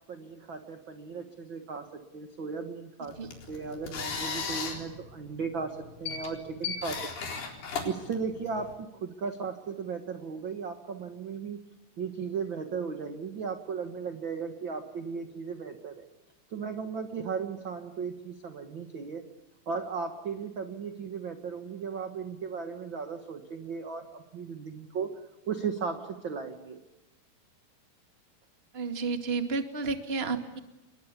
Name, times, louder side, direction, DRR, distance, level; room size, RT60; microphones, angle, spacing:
voice 1, 0.1-3.2 3.5-7.0 7.8-11.6 12.0-16.0 16.5-19.2 19.6-25.1 25.5-26.8, right 5 dB, 50° right, 6 dB, 1.5 m, -36 dB
sound 1, 3.1-8.7, left 5 dB, 85° left, 6.0 m, -37 dB
voice 2, 28.7-30.6, right 4 dB, 20° right, 6 dB, 1.6 m, -31 dB
29.0 x 22.5 x 8.5 m, 0.99 s
omnidirectional pair, 4.4 m